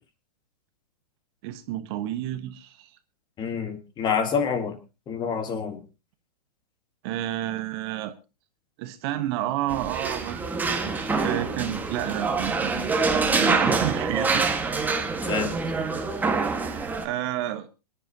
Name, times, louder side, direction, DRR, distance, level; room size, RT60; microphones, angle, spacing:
voice 1, 1.4-2.9 7.0-8.1 8.8-14.9 16.5-17.7, right 13 dB, 40° right, 10 dB, 1.2 m, -31 dB
voice 2, 3.4-4.8 5.1-5.8 15.3-15.5, left 6 dB, 20° left, 9 dB, 1.9 m, -27 dB
sound 1, 9.7-17.0, right 4 dB, 10° right, 1.6 m, -26 dB
27.5 x 10.5 x 2.9 m, 0.30 s
figure-of-eight pair, 115°, 20 cm